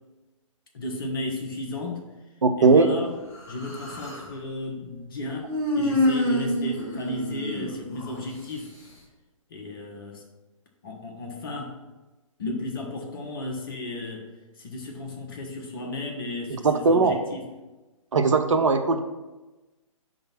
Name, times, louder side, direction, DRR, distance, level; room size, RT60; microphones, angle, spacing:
voice 1, 0.7-2.1 2.6-3.1 3.5-5.5 5.7-8.7 9.5-10.2 10.8-11.7 12.4-14.3 14.6-17.5, left 2 dB, 40° left, 1 dB, 1.1 m, -34 dB
voice 2, 2.4-2.9 16.6-17.2 18.1-19.0, right 4 dB, 65° right, 7 dB, 0.6 m, -19 dB
Human voice, 3.3-4.3 5.5-8.2, left 1 dB, 20° left, 1.4 m, -27 dB
5.1 x 3.9 x 5.8 m, 1.1 s
figure-of-eight pair, 135°, 18 cm